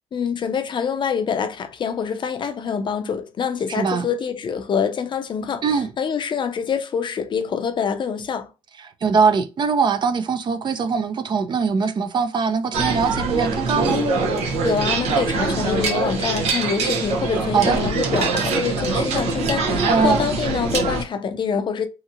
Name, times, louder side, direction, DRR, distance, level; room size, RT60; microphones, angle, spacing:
voice 1, 0.1-8.5 14.6-21.9, left 6 dB, 50° left, 0.5 m, -25 dB
voice 2, 3.7-4.1 5.6-5.9 8.8-14.0 17.5-17.8 19.9-20.3, right 5 dB, 45° right, 0.5 m, -21 dB
sound 1, 12.7-21.0, right 3 dB, 85° right, 0.8 m, -23 dB
2.8 x 2.8 x 2.4 m
cardioid pair, 75°, 11 cm